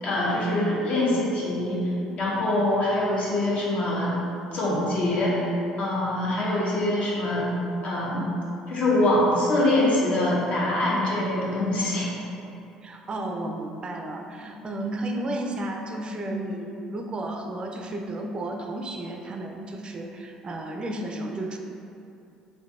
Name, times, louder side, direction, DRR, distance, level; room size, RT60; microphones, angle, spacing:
voice 1, 0.0-1.9 2.2-4.1 4.5-5.4 5.8-7.5 7.8-8.3 8.7-12.1, left 1 dB, 45° left, -6 dB, 1.0 m, -24 dB
voice 2, 12.8-21.6, right 1 dB, 30° right, 2 dB, 0.4 m, -33 dB
3.7 x 3.6 x 2.4 m, 2.7 s
hypercardioid pair, 55°, 3 cm